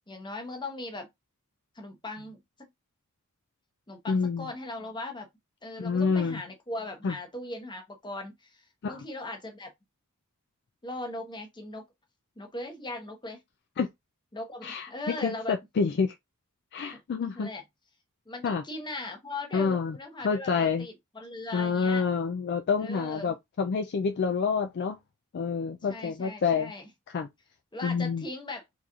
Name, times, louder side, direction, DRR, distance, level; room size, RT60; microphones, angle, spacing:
voice 1, 0.1-1.1 1.7-2.7 3.9-5.3 5.6-9.7 10.8-11.8 12.4-13.4 14.3-15.6 16.9-17.0 17.4-17.6 18.3-22.0 22.8-23.3 25.9-26.9 27.7-28.6, left 2 dB, 20° left, 0.9 m, -39 dB
voice 2, 4.1-4.5 5.8-6.4 7.0-7.2 8.8-9.0 13.8-13.9 14.6-14.9 15.2-16.1 16.7-17.5 18.4-18.6 19.5-20.0 20.2-20.9 21.5-25.0 25.3-26.7 27.1-27.3 27.8-28.3, left 5 dB, 50° left, 0.4 m, -28 dB
3.9 x 3.0 x 2.4 m
head